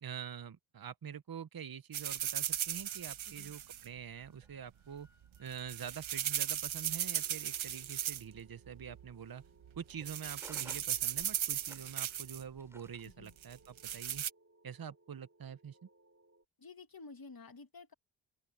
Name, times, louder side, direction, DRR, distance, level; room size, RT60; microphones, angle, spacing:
voice 1, 0.0-5.1 5.4-9.4 9.8-14.2 14.6-15.9, right 8 dB, 50° right, 1.0 m, -46 dB
sound 1, 1.9-3.9 5.4-8.4 8.7-9.1 9.6-9.8 10.1-12.4 13.4-14.3, right 10 dB, 85° right, 0.9 m, -37 dB
sound 2, 2.8-13.1, equal, 5° right, 7.6 m, -62 dB
sound 3, 7.2-16.4, right 2 dB, 30° right, 6.7 m, -67 dB
voice 2, 16.6-17.9, left 4 dB, 50° left, 2.5 m, -52 dB
open air
cardioid pair, 40°, 47 cm